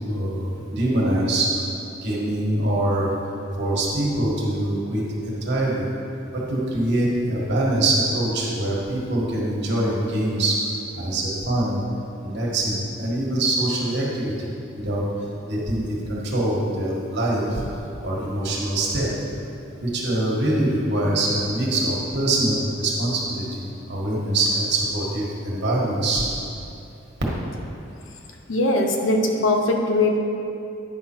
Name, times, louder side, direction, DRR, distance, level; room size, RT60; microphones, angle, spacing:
voice 1, 0.1-1.5 2.0-3.1 3.6-5.0 5.4-5.8 6.3-10.6 10.9-11.8 12.2-14.5 14.7-15.0 15.4-15.8 16.1-17.6 18.0-19.1 19.8-23.4 23.9-26.2, right 1 dB, 60° right, -4 dB, 1.7 m, -23 dB
voice 2, 28.5-30.2, left 2 dB, 80° left, 3 dB, 0.8 m, -20 dB
9.5 x 5.6 x 4.5 m, 2.7 s
head